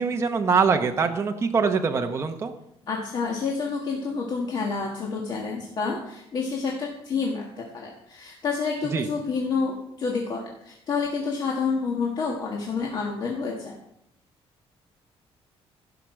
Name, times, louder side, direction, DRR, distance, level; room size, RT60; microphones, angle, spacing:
voice 1, 0.0-2.5 8.9-9.1, right 5 dB, 25° right, 4 dB, 0.8 m, -23 dB
voice 2, 2.9-13.7, left 4 dB, 40° left, -1 dB, 1.6 m, -29 dB
15.5 x 5.8 x 6.3 m, 0.78 s
cardioid pair, 180°, 11 cm